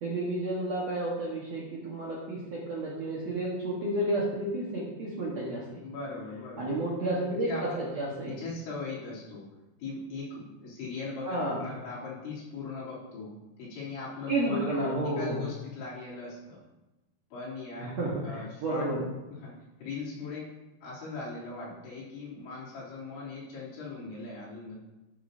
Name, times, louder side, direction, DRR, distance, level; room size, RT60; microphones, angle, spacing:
voice 1, 0.0-5.8 6.6-8.4 11.2-11.7 14.3-15.4 17.8-19.1, right 1 dB, 65° right, -5 dB, 1.7 m, -31 dB
voice 2, 5.8-6.7 7.3-7.8 8.3-9.5 9.8-13.3 13.6-14.7 15.0-16.6 17.3-18.0 18.2-18.9 19.3-19.6 19.8-20.5 20.8-24.7, left 3 dB, 85° left, -7 dB, 5.6 m, -39 dB
12.5 x 8.7 x 2.8 m, 1.0 s
omnidirectional pair, 5.2 m